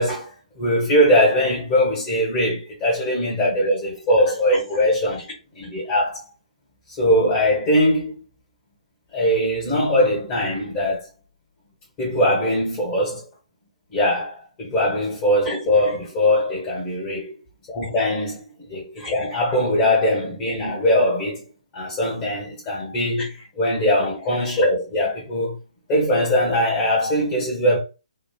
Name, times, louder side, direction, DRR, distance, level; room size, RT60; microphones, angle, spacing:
voice 1, 0.0-5.3 5.5-6.3 7.0-8.2 9.1-11.1 12.0-13.2 13.9-17.3 17.7-21.4 21.7-25.5 25.9-27.8, equal, 25° left, 1.2 m, -21 dB
3.1 x 2.3 x 2.3 m
figure-of-eight pair, 135°, 4 cm